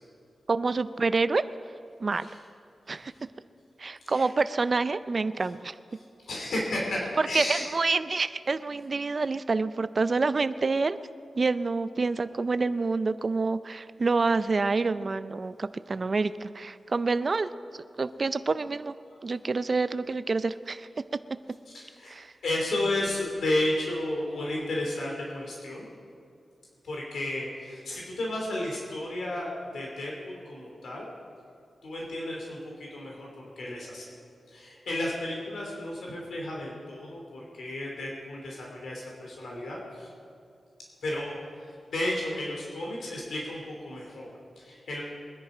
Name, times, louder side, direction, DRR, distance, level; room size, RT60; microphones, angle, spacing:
voice 1, 0.5-1.4 2.0-2.3 2.9-3.1 3.8-5.8 7.2-11.0 11.4-18.9 19.2-21.0 22.1-22.3, right 3 dB, 40° right, 13 dB, 0.5 m, -27 dB
voice 2, 6.0-7.7 21.7-25.9 26.8-31.1 31.8-34.1 34.5-40.1 41.0-45.0, left 1 dB, 90° left, -2 dB, 2.9 m, -33 dB
22.5 x 10.5 x 5.0 m, 2.4 s
wide cardioid pair, 125°, 0 cm